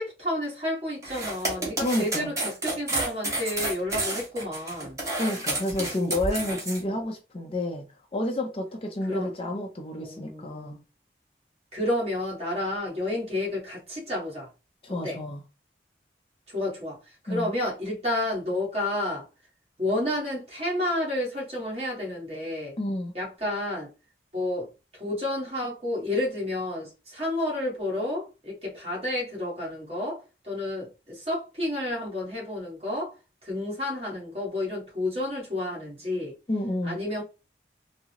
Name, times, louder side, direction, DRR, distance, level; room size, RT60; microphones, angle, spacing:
voice 1, 0.0-5.0 6.9-7.0 9.0-9.3 10.0-10.8 11.7-14.5 15.0-15.2 16.5-17.0 17.2-19.2 19.8-22.7 23.1-23.9 24.3-24.7 24.9-33.1 33.4-36.3 36.8-37.2, left 1 dB, 35° right, 1.5 m, -30 dB
sound 1, 1.0-6.8, right 2 dB, 20° right, 1.0 m, -30 dB
voice 2, 1.8-2.3 5.2-10.8 14.8-15.4 17.3-17.5 22.8-23.1 36.5-37.0, left 1 dB, 30° left, 0.5 m, -30 dB
3.6 x 2.0 x 2.9 m
head